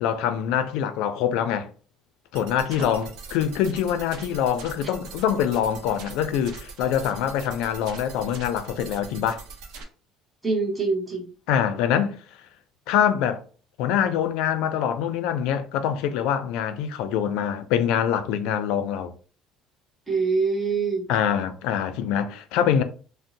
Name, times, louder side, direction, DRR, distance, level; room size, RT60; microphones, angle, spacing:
voice 1, 0.0-1.7 2.3-9.4 11.5-12.2 12.9-13.4 13.8-19.1 21.1-22.8, left 9 dB, 80° left, 0.4 m, -24 dB
sound 1, 2.3-9.8, right 4 dB, 75° right, 0.7 m, -42 dB
voice 2, 10.4-11.3 20.1-21.1, right 4 dB, 15° right, 0.8 m, -24 dB
2.6 x 2.0 x 3.8 m
cardioid pair, 155°, 0 cm